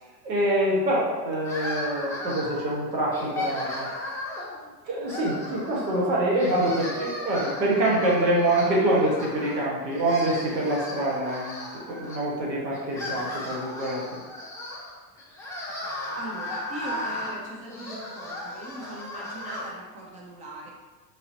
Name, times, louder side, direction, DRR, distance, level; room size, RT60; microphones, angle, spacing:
voice 1, 0.2-3.9 4.8-14.0, right 1 dB, 85° right, -4 dB, 1.3 m, -25 dB
sound 1, 1.4-2.7 3.1-4.6 5.0-6.0 6.3-9.6 9.9-12.2 12.7-19.7, left 1 dB, 5° left, 0.7 m, -35 dB
voice 2, 16.1-20.7, right 1 dB, 20° right, -3 dB, 0.3 m, -40 dB
4.0 x 2.7 x 2.6 m, 1.2 s
hypercardioid pair, 110°, 50 cm